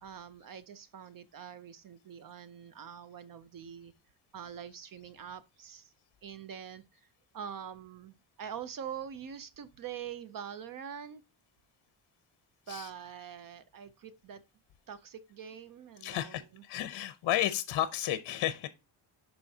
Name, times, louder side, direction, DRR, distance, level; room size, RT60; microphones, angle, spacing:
voice 1, 0.0-3.9 4.3-5.9 6.2-7.0 7.3-11.2 12.7-14.4 14.9-16.6, right 8 dB, 45° right, 0.6 m, -44 dB
voice 2, 16.0-18.7, left 12 dB, 60° left, 0.7 m, -32 dB
11.0 x 4.4 x 2.7 m
cardioid pair, 170°, 46 cm